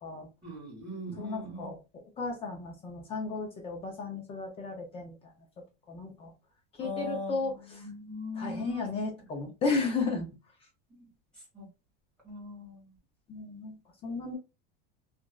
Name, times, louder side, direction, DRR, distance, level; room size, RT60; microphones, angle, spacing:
voice 1, 0.4-1.7 6.8-8.8 10.9-11.0 11.5-11.7 12.2-12.8, left 1 dB, 5° left, -5 dB, 1.7 m, -40 dB
voice 2, 1.2-1.8 2.2-5.1 5.9-6.3 6.8-7.8 8.4-10.3 13.3-13.7 14.0-14.4, left 4 dB, 20° left, 2 dB, 0.4 m, -34 dB
2.9 x 2.5 x 2.2 m, 0.29 s
supercardioid pair, 165°, 29 cm